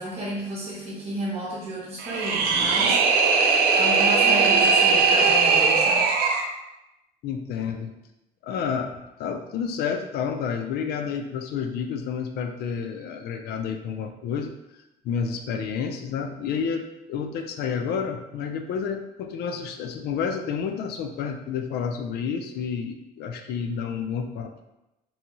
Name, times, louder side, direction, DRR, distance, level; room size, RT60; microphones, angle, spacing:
voice 1, 0.0-6.2, right 1 dB, 35° right, -7 dB, 0.9 m, -32 dB
sound 1, 2.0-6.5, right 4 dB, 65° right, 0.4 m, -19 dB
voice 2, 7.2-8.0 8.4-14.5 15.0-24.5, left 6 dB, 70° left, 6 dB, 0.4 m, -30 dB
2.8 x 2.2 x 2.9 m, 0.94 s
cardioid pair, 110°, 17 cm